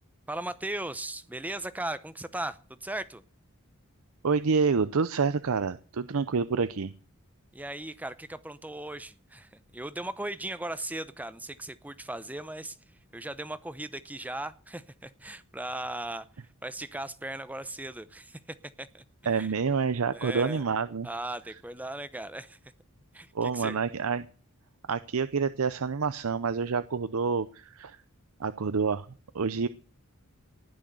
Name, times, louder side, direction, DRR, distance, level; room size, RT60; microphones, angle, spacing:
voice 1, 0.3-3.2 7.5-12.8 13.1-16.3 16.6-19.0 19.3-19.5 20.1-20.6 21.0-22.6 23.1-23.8, right 1 dB, 5° right, 14 dB, 0.7 m, -37 dB
voice 2, 4.2-6.9 19.2-21.1 23.3-24.3 24.9-28.0 28.4-29.1 29.3-29.7, right 5 dB, 75° right, 13 dB, 0.6 m, -28 dB
19.0 x 6.3 x 7.9 m, 0.40 s
head